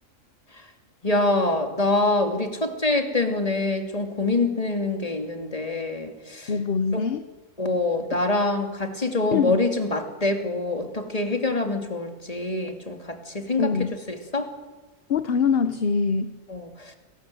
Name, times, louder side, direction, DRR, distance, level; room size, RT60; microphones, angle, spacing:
voice 1, 1.0-6.5 6.9-7.0 7.6-13.7 14.1-14.5 16.5-17.0, left 2 dB, 25° left, 4 dB, 2.9 m, -25 dB
voice 2, 6.5-7.3 8.1-8.2 9.3-9.6 13.6-14.0 15.1-16.3, left 5 dB, 50° left, 11 dB, 1.1 m, -23 dB
28.5 x 20.5 x 7.9 m, 1.2 s
omnidirectional pair, 1.4 m